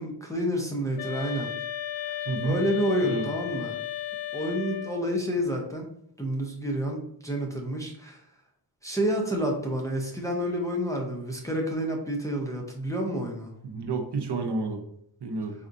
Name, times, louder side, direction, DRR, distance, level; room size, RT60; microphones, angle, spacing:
voice 1, 0.0-1.5 2.4-3.8 4.3-5.9 6.2-8.2 8.8-13.5, equal, 5° left, -1 dB, 0.6 m, -29 dB
sound 1, 1.0-5.1, left 11 dB, 90° left, 0.5 m, -34 dB
voice 2, 2.3-2.6 3.0-3.3 13.6-14.8 15.2-15.5, right 3 dB, 65° right, 3 dB, 0.7 m, -30 dB
4.2 x 2.4 x 2.6 m, 0.71 s
wide cardioid pair, 90°, 45 cm